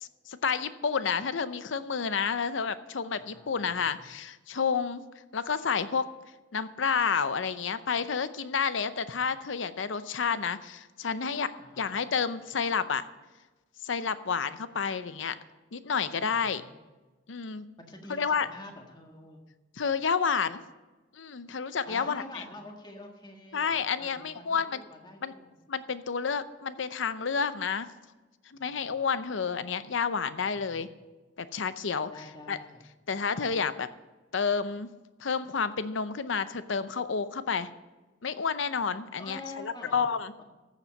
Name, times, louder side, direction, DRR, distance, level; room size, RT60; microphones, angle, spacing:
voice 1, 0.0-5.0 5.3-6.1 6.5-11.5 11.8-13.1 13.8-15.4 15.7-16.6 17.3-17.6 18.1-18.5 19.8-20.6 21.1-22.4 23.5-24.8 25.2-25.3 25.7-27.9 28.5-30.9 31.4-32.1 32.5-32.6 33.1-33.9 34.3-34.9 35.2-37.7 38.2-40.3, left 6 dB, 85° left, 13 dB, 0.7 m, -30 dB
voice 2, 3.1-4.0 11.6-11.9 16.3-16.7 17.8-19.4 21.8-23.7 24.0-25.5 28.5-29.0 30.4-30.9 32.1-32.8 39.2-40.0 40.4-40.5, left 2 dB, 25° left, 2 dB, 1.7 m, -47 dB
14.0 x 7.4 x 5.3 m, 1.2 s
head